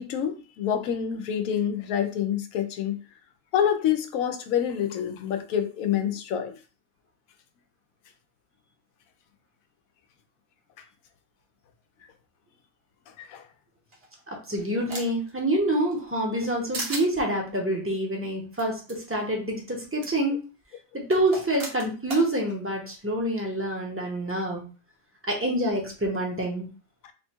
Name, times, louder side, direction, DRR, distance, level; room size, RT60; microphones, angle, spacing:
voice 1, 0.0-3.0 3.5-6.6 10.8-10.9 13.2-13.5 27.0-27.1, left 9 dB, 85° left, 1.0 m, -27 dB
sound 1, 13.9-15.3 15.7-16.5 16.7-17.1 18.6-18.7 18.9-19.0 20.0-20.1 21.1-22.3, right 2 dB, 50° right, 1.1 m, -36 dB
voice 2, 14.5-20.4 20.9-24.7 25.3-26.7, right 1 dB, 10° right, 0.7 m, -27 dB
3.4 x 2.2 x 4.4 m
omnidirectional pair, 1.4 m